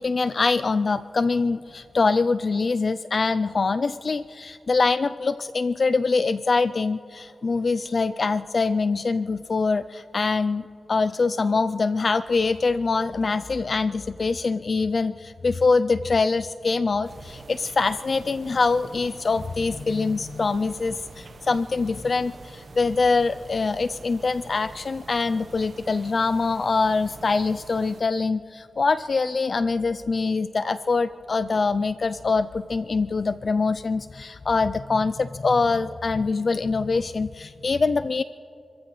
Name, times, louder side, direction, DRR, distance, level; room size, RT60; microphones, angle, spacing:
voice 1, 0.0-38.2, left 4 dB, 50° left, 13 dB, 0.3 m, -24 dB
sound 1, 17.0-28.0, right 4 dB, 55° right, 0.9 m, -45 dB
29.5 x 14.5 x 3.1 m, 2.7 s
wide cardioid pair, 115°, 0 cm